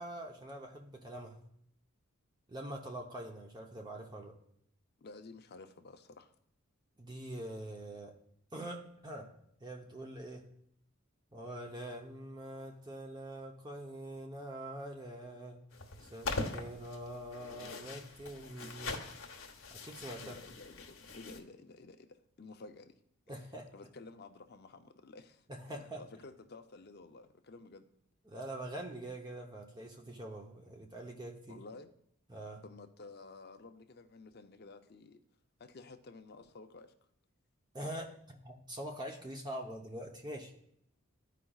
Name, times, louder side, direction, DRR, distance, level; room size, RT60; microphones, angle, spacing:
voice 1, 0.0-1.4 2.5-4.3 7.0-8.1 8.5-9.3 9.6-10.5 11.3-15.6 16.0-19.0 19.7-20.4 23.3-23.7 25.5-26.0 28.3-31.6 32.3-32.6 37.7-40.5, right 1 dB, 20° right, 1 dB, 0.7 m, -44 dB
voice 2, 5.0-6.3 20.2-23.0 23.4-23.5 23.7-27.8 31.5-31.9 32.6-35.2 35.6-36.9, left 3 dB, 50° left, 7 dB, 0.5 m, -52 dB
sound 1, 15.7-21.4, left 3 dB, 75° left, 1.0 m, -42 dB
13.0 x 4.9 x 2.3 m, 0.72 s
head